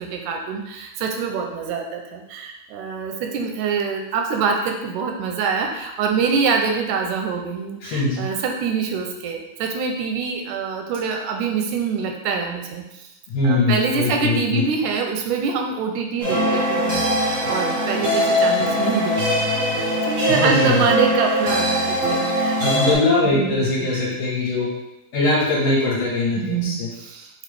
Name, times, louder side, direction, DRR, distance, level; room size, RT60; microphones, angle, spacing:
voice 1, 0.0-13.1 13.4-22.9 23.2-24.2 26.4-27.3, right 5 dB, 85° right, 3 dB, 2.1 m, -25 dB
voice 2, 7.8-8.3 13.3-14.6 20.3-20.8 22.6-24.7 25.1-26.7, left 2 dB, 60° left, -6 dB, 1.9 m, -21 dB
sound 1, 16.2-22.9, equal, 45° right, 0.9 m, -21 dB
5.9 x 2.6 x 3.3 m, 0.94 s
omnidirectional pair, 3.5 m